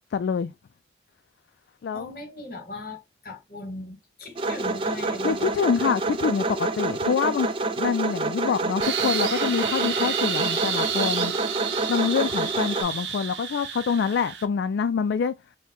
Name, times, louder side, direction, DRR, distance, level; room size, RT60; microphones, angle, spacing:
voice 1, 0.1-0.5 1.8-2.1 5.2-7.5 7.8-11.3 11.9-15.3, left 6 dB, 80° left, 0.3 m, -26 dB
voice 2, 1.9-5.5, left 2 dB, 55° left, 1.2 m, -39 dB
sound 1, 4.4-12.8, right 2 dB, 30° right, 0.4 m, -27 dB
sound 2, 8.8-14.5, right 8 dB, 80° right, 0.7 m, -30 dB
4.4 x 2.1 x 3.7 m
head